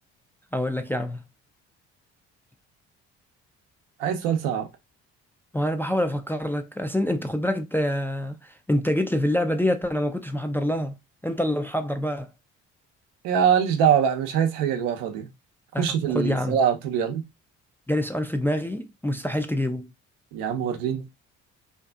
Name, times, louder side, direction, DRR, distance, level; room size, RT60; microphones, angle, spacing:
voice 1, 0.5-1.2 5.5-11.0 11.2-12.3 15.7-16.6 17.9-19.9, left 1 dB, 5° left, 0.3 m, -26 dB
voice 2, 4.0-4.7 13.2-15.3 15.8-17.2 20.3-21.1, right 8 dB, 85° right, 0.6 m, -23 dB
2.6 x 2.4 x 2.3 m
hypercardioid pair, 60°, 34 cm